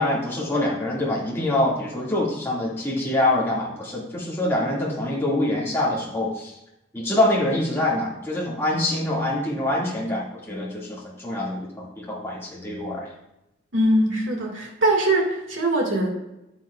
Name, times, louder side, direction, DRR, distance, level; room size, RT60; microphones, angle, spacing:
voice 1, 0.0-6.5 6.9-13.1, left 1 dB, 10° left, -6 dB, 1.9 m, -25 dB
voice 2, 13.7-16.1, right 1 dB, 75° right, 0 dB, 1.9 m, -21 dB
9.1 x 8.8 x 2.3 m, 0.90 s
head